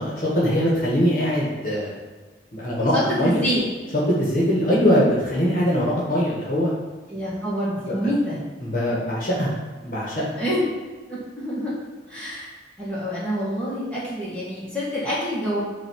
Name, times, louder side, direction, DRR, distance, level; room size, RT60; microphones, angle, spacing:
voice 1, 0.0-2.0 2.5-3.4 4.2-6.7 7.9-8.1 8.6-9.5 9.8-10.4, equal, 50° left, -6 dB, 1.5 m, -22 dB
voice 2, 2.9-3.6 7.1-8.4 10.4-10.7 11.1-11.7 12.1-12.5 12.8-15.6, equal, 5° left, -10 dB, 1.8 m, -26 dB
8.3 x 2.9 x 4.6 m, 1.3 s
head